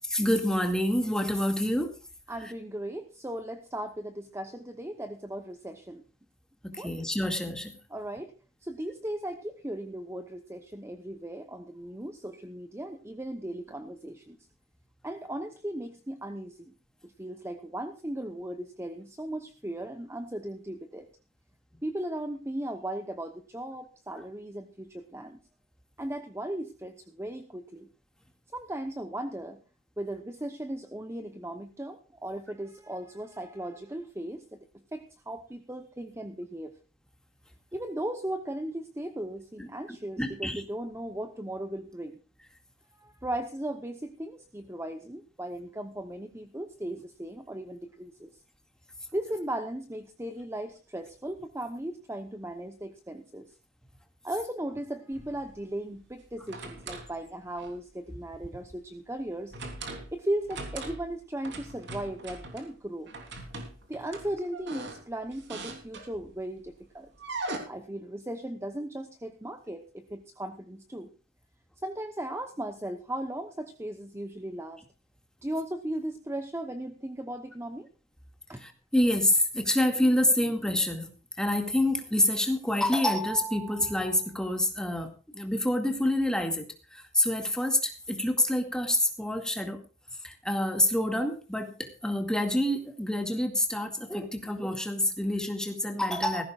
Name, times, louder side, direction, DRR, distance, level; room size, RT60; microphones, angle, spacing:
voice 1, 0.1-1.9 2.4-2.5 6.6-7.7 39.6-39.7 40.2-40.6 78.6-81.1 81.4-89.8 90.2-96.4, left 1 dB, 5° left, 4 dB, 2.1 m, -27 dB
voice 2, 2.3-6.0 6.7-6.9 7.9-8.3 8.6-14.4 15.0-16.7 17.0-21.1 21.8-25.4 26.0-27.9 28.5-29.6 30.0-36.7 37.7-42.2 43.0-48.3 49.1-53.6 54.2-59.5 60.1-63.1 63.9-67.1 67.7-71.1 71.8-74.8 75.4-77.9 78.5-78.6, right 1 dB, 15° right, 7 dB, 0.9 m, -37 dB
sound 1, 55.1-55.5 56.2-57.1 57.6-57.8 59.5-60.1 60.4-61.1 61.4-62.7 63.1-66.4 67.2-67.6, right 2 dB, 60° right, 3.4 m, -40 dB
18.5 x 15.0 x 2.4 m, 0.35 s
head